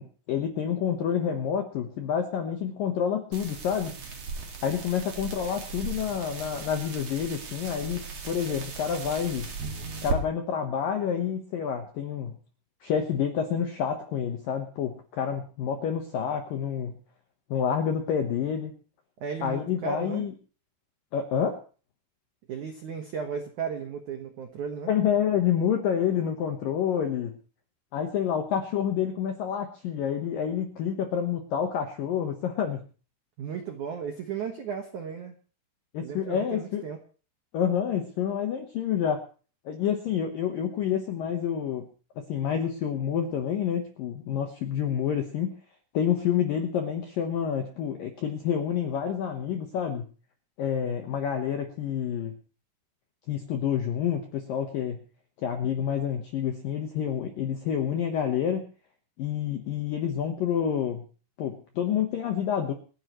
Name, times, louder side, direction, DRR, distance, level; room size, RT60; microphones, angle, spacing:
voice 1, 0.0-3.9 4.6-9.5 10.0-12.3 12.8-17.0 17.5-18.7 19.4-20.3 21.1-21.6 24.9-27.4 27.9-32.8 35.9-36.8 37.5-39.2 39.7-41.9 42.2-45.5 45.9-50.0 50.6-52.3 53.3-55.0 55.4-58.7 59.2-61.0 61.4-62.7, left 8 dB, 75° left, 5 dB, 2.0 m, -28 dB
sound 1, 3.3-10.2, right 4 dB, 45° right, 2.2 m, -37 dB
voice 2, 19.2-20.3 22.5-24.9 33.4-35.3 36.0-37.0, right 6 dB, 75° right, 5 dB, 1.7 m, -35 dB
28.5 x 10.5 x 3.1 m, 0.38 s
omnidirectional pair, 5.9 m